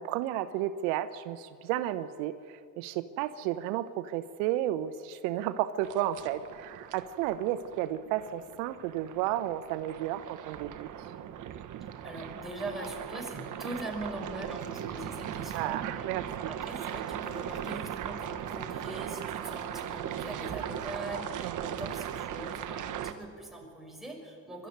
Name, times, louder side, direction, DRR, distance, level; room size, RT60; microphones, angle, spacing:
voice 1, 0.0-10.9 15.5-16.5 21.4-21.7, right 13 dB, 80° right, 12 dB, 0.9 m, -32 dB
sound 1, 5.8-23.1, right 10 dB, 50° right, 1.4 m, -38 dB
voice 2, 12.0-16.1 16.4-24.7, right 1 dB, ahead, -1 dB, 6.2 m, -41 dB
23.0 x 13.0 x 9.4 m, 2.2 s
supercardioid pair, 90°, 40 cm